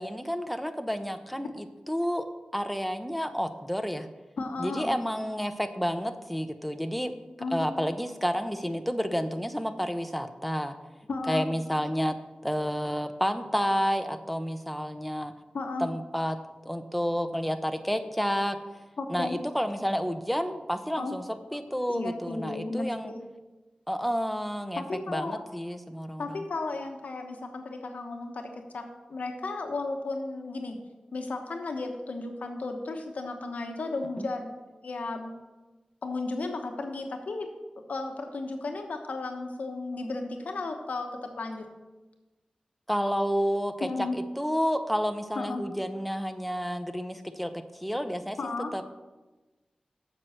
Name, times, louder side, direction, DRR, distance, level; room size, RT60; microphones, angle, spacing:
voice 1, 0.0-2.2 2.5-4.1 4.6-7.1 7.5-10.7 11.3-12.2 12.4-15.3 15.8-16.4 16.6-18.6 19.1-21.2 21.5-23.1 23.9-26.4 34.2-34.3 42.9-48.9, equal, ahead, 8 dB, 0.8 m, -30 dB
voice 2, 4.4-4.9 7.4-7.8 11.1-11.6 15.5-15.9 19.0-19.4 21.0-21.1 21.9-23.2 24.7-25.4 26.2-30.8 31.1-34.6 34.8-35.3 36.0-37.6 37.9-41.7 43.9-44.2 45.3-45.7 48.4-48.7, left 3 dB, 85° left, 4 dB, 1.1 m, -34 dB
7.5 x 6.1 x 6.5 m, 1.2 s
cardioid pair, 50°, 3 cm